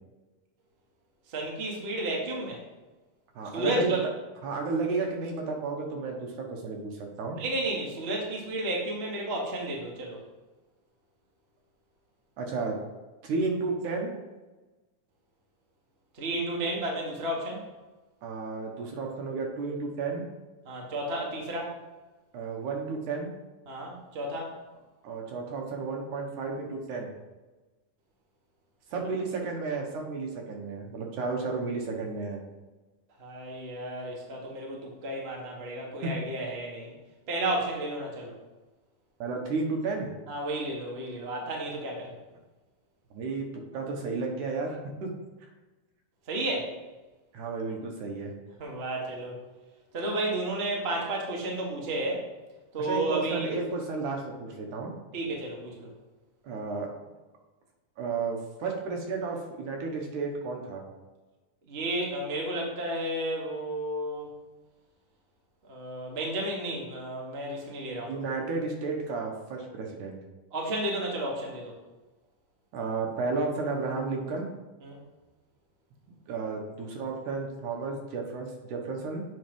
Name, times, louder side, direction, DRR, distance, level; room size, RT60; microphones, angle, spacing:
voice 1, 1.3-2.6 3.5-4.0 7.4-10.2 16.1-17.6 20.6-21.8 23.7-24.5 33.2-36.9 37.3-38.3 40.3-42.2 46.3-46.8 48.6-49.4 49.9-52.3 52.7-53.5 55.1-55.9 61.7-64.3 65.6-68.1 70.5-71.8 74.8-75.0, right 1 dB, 40° right, -2 dB, 0.8 m, -32 dB
voice 2, 3.4-4.0 4.4-7.4 12.4-12.8 13.2-14.1 18.2-20.2 22.3-23.3 25.0-27.1 28.9-32.4 36.0-36.1 39.2-40.1 43.1-43.5 43.7-45.1 47.3-48.3 52.8-54.9 56.4-56.9 58.0-60.8 68.1-70.1 72.7-74.5 76.3-79.2, right 4 dB, 70° right, 1 dB, 2.5 m, -32 dB
7.6 x 5.4 x 5.3 m, 1.2 s
omnidirectional pair, 3.8 m